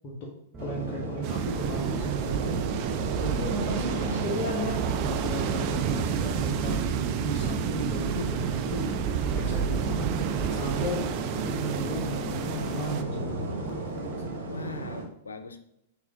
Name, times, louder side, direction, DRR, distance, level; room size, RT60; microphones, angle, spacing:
sound 1, 0.5-14.4, equal, 15° right, 0.6 m, -41 dB
voice 1, 0.6-2.7 3.2-6.7 7.2-9.0 9.3-13.6 14.5-14.7, equal, 35° left, -3 dB, 0.8 m, -35 dB
sound 2, 0.6-15.1, right 3 dB, 70° right, 1.0 m, -36 dB
sound 3, 1.2-13.0, right 8 dB, 45° right, 0.3 m, -30 dB
voice 2, 3.9-4.3 14.3-15.6, left 3 dB, 85° left, 8 dB, 0.4 m, -41 dB
3.5 x 3.3 x 3.4 m, 0.81 s
hypercardioid pair, 105°, 0 cm